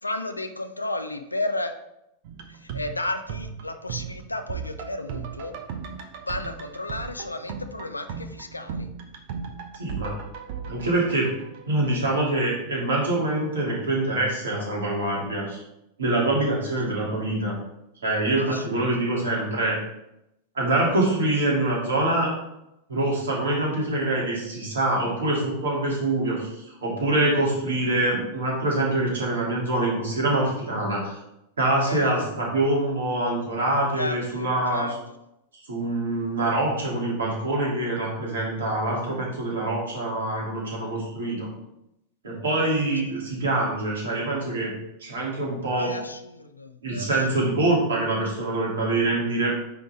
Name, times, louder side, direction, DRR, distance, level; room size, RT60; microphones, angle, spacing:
voice 1, 0.0-1.8 2.5-5.5 6.3-8.9 18.4-18.8 31.9-32.4 33.9-35.0 45.7-47.5, left 2 dB, 85° left, 7 dB, 0.6 m, -33 dB
sound 1, 2.2-12.2 12.5-12.6, right 6 dB, 50° right, 0.8 m, -37 dB
voice 2, 9.8-10.2 10.7-11.3 11.7-15.6 16.0-17.6 18.0-19.8 20.5-22.3 22.9-31.2 31.6-34.9 35.7-41.5 42.2-44.7 45.0-45.9 46.8-49.5, right 2 dB, 65° right, -4 dB, 2.6 m, -25 dB
9.4 x 3.9 x 3.5 m, 0.84 s
figure-of-eight pair, 90°, 0 cm